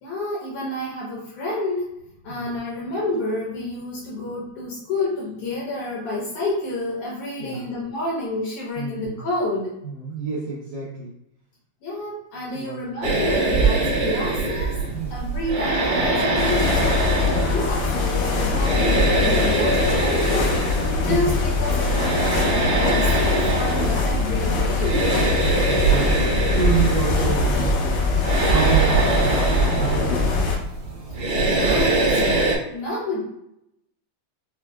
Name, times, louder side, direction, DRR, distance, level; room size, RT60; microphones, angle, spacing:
voice 1, 0.0-1.8 2.2-9.7 11.8-14.8 15.1-25.1 31.5-33.2, left 2 dB, 70° left, -6 dB, 2.2 m, -29 dB
voice 2, 8.7-9.3 9.8-11.1 12.5-12.8 13.8-14.0 14.9-15.1 16.2-16.3 18.2-18.4 21.1-21.2 25.6-26.1 26.5-28.0 28.5-30.6, right 5 dB, 80° right, -7 dB, 1.5 m, -29 dB
sound 1, 13.0-32.5, right 3 dB, 60° right, 1.5 m, -23 dB
sound 2, 16.3-30.6, left 5 dB, 90° left, 1.5 m, -23 dB
6.1 x 2.1 x 2.2 m, 0.80 s
omnidirectional pair, 4.1 m